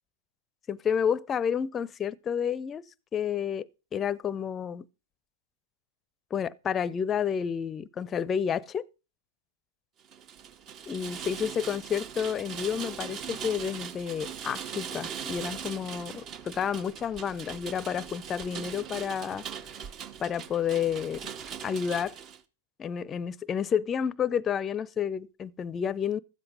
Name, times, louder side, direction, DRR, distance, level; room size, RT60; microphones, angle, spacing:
voice 1, 0.7-2.8 3.1-4.9 6.3-8.9 10.9-19.5 20.2-21.3 21.6-22.1 22.8-26.2, left 8 dB, 25° left, 0.5 m, -30 dB
Rain, 10.0-22.4, right 8 dB, 35° right, 0.9 m, -40 dB
13.0 x 7.9 x 5.2 m
hypercardioid pair, 110°, 0 cm